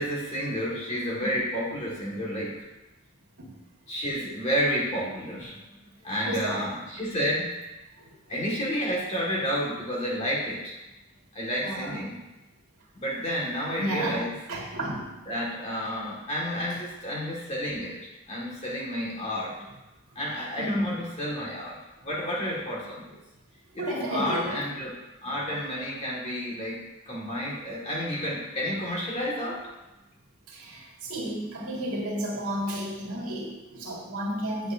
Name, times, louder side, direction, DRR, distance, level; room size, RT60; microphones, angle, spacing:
voice 1, 0.0-2.6 3.9-5.6 6.0-7.5 8.3-10.7 11.4-12.1 13.0-14.3 15.3-18.0 18.3-19.5 20.2-23.1 23.7-24.9 25.2-29.6, equal, 30° left, -4 dB, 1.8 m, -30 dB
voice 2, 6.2-6.7 8.0-8.4 11.6-12.1 13.8-14.2 14.5-15.1 16.7-16.8 20.6-21.0 23.7-24.7 30.5-34.7, right 1 dB, 80° right, -4 dB, 2.0 m, -32 dB
8.1 x 7.6 x 2.6 m, 1.0 s
head